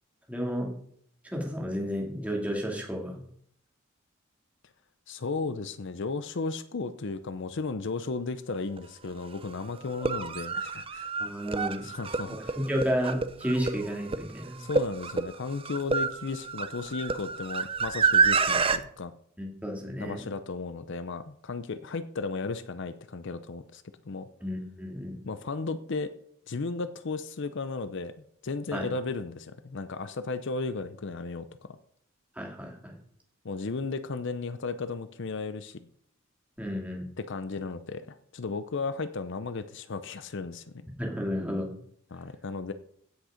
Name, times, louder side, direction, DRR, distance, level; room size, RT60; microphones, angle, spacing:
voice 1, 0.3-0.7 1.2-3.2 11.2-11.8 12.3-14.6 19.4-20.2 24.4-25.2 28.7-28.9 32.4-32.9 36.6-37.0 41.0-41.7, equal, 5° right, 0 dB, 2.6 m, -32 dB
voice 2, 5.1-11.1 11.8-12.6 14.6-19.1 20.0-24.3 25.2-26.1 26.5-28.1 28.4-31.8 33.4-35.9 37.2-40.9 42.1-42.7, left 4 dB, 60° left, 12 dB, 0.6 m, -35 dB
sound 1, 8.8-8.9 9.9-18.8, right 4 dB, 25° right, 0.7 m, -28 dB
16.0 x 6.5 x 5.1 m, 0.65 s
head